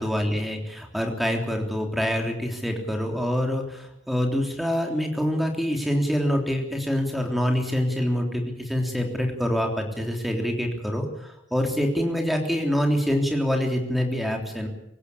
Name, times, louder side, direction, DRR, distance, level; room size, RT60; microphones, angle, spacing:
voice 1, 0.0-14.7, equal, ahead, 2 dB, 3.4 m, -25 dB
25.5 x 15.0 x 8.5 m, 0.84 s
head